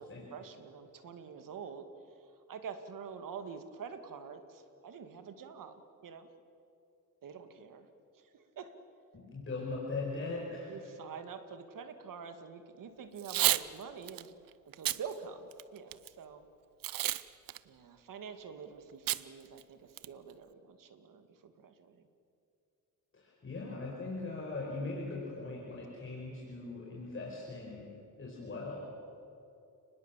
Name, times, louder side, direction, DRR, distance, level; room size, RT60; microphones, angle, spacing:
voice 1, 0.0-1.9 2.5-5.7 6.0-6.3 7.2-7.9 8.1-8.7 10.7-14.3 14.7-16.4 17.7-22.0, right 6 dB, 75° right, 8 dB, 2.1 m, -46 dB
voice 2, 9.1-10.8 23.1-27.9 28.2-28.8, left 3 dB, 40° left, -3 dB, 5.4 m, -40 dB
Packing tape duct tape / Tearing, 13.2-13.6 14.1-14.2 14.7-15.0 15.5-16.1 16.8-17.2 17.5-17.6 19.1-19.2 19.6-19.7 20.0-20.3, right 14 dB, 90° right, 0.7 m, -30 dB
29.5 x 20.5 x 7.5 m, 2.6 s
cardioid pair, 105°, 33 cm